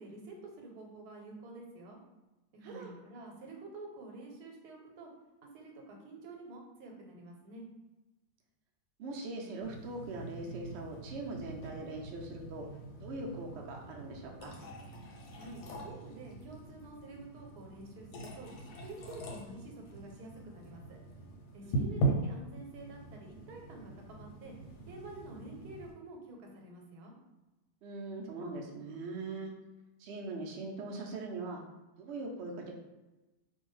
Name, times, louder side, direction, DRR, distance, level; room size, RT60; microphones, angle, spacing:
voice 1, 0.0-2.0 2.5-5.1 5.4-7.6 15.4-18.5 18.8-21.0 21.5-24.5 24.9-27.1, right 2 dB, 85° right, 0 dB, 1.2 m, -49 dB
voice 2, 9.0-12.7 13.0-14.6 21.6-22.1 27.8-29.5 30.0-31.6 32.0-32.7, right 2 dB, 65° right, 0 dB, 0.6 m, -41 dB
sound 1, 9.6-25.9, right 2 dB, 90° left, 1.1 m, -41 dB
2.6 x 2.2 x 3.0 m, 1.1 s
omnidirectional pair, 1.6 m